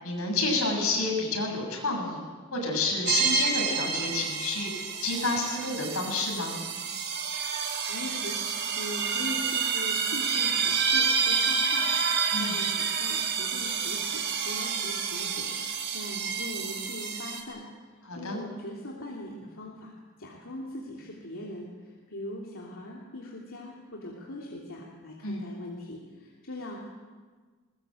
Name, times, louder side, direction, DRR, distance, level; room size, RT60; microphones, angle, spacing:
voice 1, 0.0-2.2 2.5-6.6 12.3-12.6 18.1-18.4 25.2-25.4, left 3 dB, 90° left, 1 dB, 7.5 m, -29 dB
sound 1, 3.1-17.4, right 6 dB, 55° right, 3.5 m, -29 dB
voice 2, 7.9-17.7 18.1-19.9 20.2-26.8, left 1 dB, 70° left, -3 dB, 3.1 m, -41 dB
21.5 x 21.5 x 7.9 m, 1.5 s
head